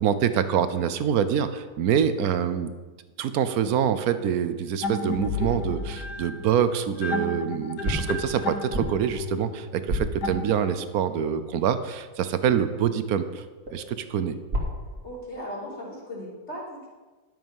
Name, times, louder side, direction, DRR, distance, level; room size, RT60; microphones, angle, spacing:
voice 1, 0.0-2.7 3.2-13.4 13.7-14.4, right 8 dB, 70° right, 11 dB, 1.1 m, -25 dB
sound 1, 4.8-11.0, left 3 dB, 80° left, 1.6 m, -32 dB
sound 2, 6.6-7.2 7.8-11.0 13.7-15.2, equal, 50° right, 2.8 m, -33 dB
voice 2, 15.0-16.9, equal, 40° left, -6 dB, 3.6 m, -37 dB
12.5 x 7.3 x 5.3 m, 1.3 s
omnidirectional pair, 1.7 m